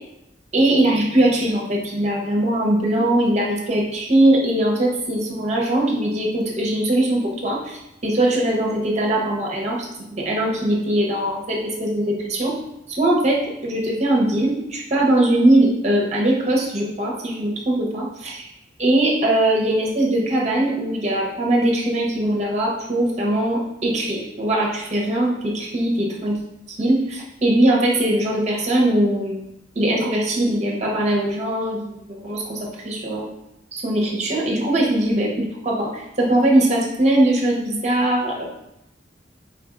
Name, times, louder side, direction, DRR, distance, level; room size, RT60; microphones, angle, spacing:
voice 1, 0.5-12.5 12.9-18.5 18.8-26.4 26.8-29.4 29.7-33.3 33.7-38.4, right 1 dB, 40° right, -2 dB, 0.8 m, -21 dB
4.1 x 3.6 x 2.5 m, 0.84 s
head